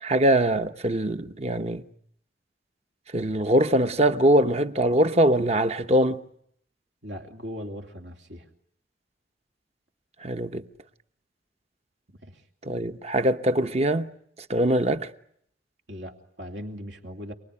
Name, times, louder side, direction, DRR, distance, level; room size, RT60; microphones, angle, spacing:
voice 1, 0.0-1.8 3.1-6.2 10.2-10.6 12.6-14.1 14.5-15.1, right 1 dB, 35° right, 1.0 m, -22 dB
voice 2, 7.0-8.5 12.2-12.4 15.9-17.3, equal, 70° right, 2.9 m, -39 dB
29.0 x 20.5 x 9.9 m
head